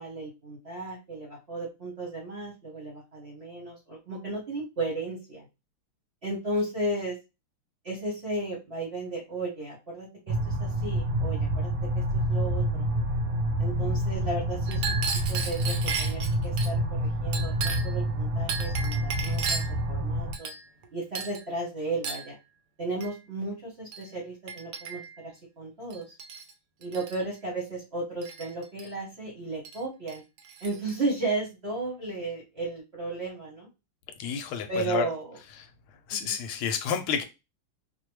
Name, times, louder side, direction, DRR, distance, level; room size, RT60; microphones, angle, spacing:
voice 1, 0.0-5.4 6.2-7.2 7.8-12.9 13.6-15.0 15.3-20.5 20.9-22.4 22.8-26.1 26.8-30.2 30.6-33.7 34.7-35.4 36.1-36.4, right 2 dB, 40° right, 0.9 m, -34 dB
sound 1, 10.3-20.4, right 1 dB, 90° right, 1.8 m, -28 dB
Chink clink, 14.7-16.7 17.3-18.0 18.5-19.8 20.3-20.9 21.2-21.5 22.0-22.3 23.0-23.2 23.9-24.1 24.5-25.2 25.9-26.5 26.8-27.2 28.2-28.9 29.7-29.8 30.1-31.0, right 5 dB, 70° right, 1.0 m, -35 dB
voice 2, 34.2-35.0 36.1-37.2, left 7 dB, 75° left, 1.4 m, -29 dB
4.7 x 2.2 x 3.1 m
omnidirectional pair, 2.4 m